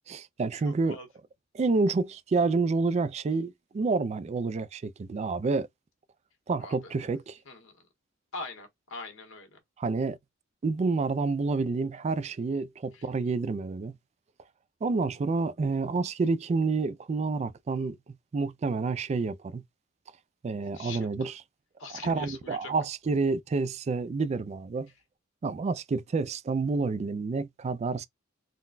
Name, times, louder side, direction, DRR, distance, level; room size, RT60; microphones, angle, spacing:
voice 1, 0.1-1.0 1.5-5.7 6.5-7.4 9.8-10.2 10.6-13.9 14.8-18.0 18.3-19.6 20.4-21.4 21.9-24.9 25.4-28.1, right 4 dB, 35° right, 0.3 m, -29 dB
voice 2, 0.6-1.1 6.6-6.8 7.5-7.7 8.3-9.6 20.7-21.1 21.8-22.7, left 3 dB, 85° left, 1.2 m, -42 dB
3.8 x 2.2 x 2.5 m
head